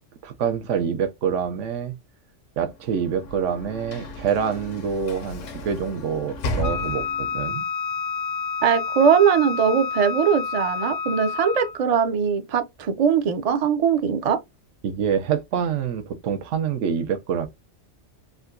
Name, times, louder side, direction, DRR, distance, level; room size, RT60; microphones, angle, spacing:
voice 1, 0.2-1.9 2.6-7.7 14.8-17.5, right 7 dB, 80° right, 1.0 m, -26 dB
Sliding door / Slam, 2.7-7.5, left 1 dB, 90° left, 1.2 m, -34 dB
Wind instrument woodwind instrument, 6.6-11.8, left 5 dB, 70° left, 0.8 m, -29 dB
voice 2, 8.6-14.4, right 7 dB, 55° right, 0.4 m, -20 dB
3.7 x 2.2 x 2.4 m
omnidirectional pair, 1.3 m